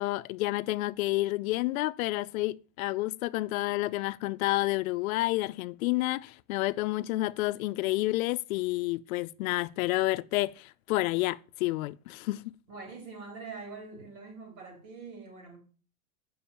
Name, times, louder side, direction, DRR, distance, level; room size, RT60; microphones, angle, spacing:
voice 1, 0.0-12.5, left 19 dB, 70° left, 0.5 m, -30 dB
voice 2, 12.7-15.6, right 4 dB, 70° right, 4.2 m, -44 dB
7.0 x 5.5 x 5.7 m
supercardioid pair, 155°, 44 cm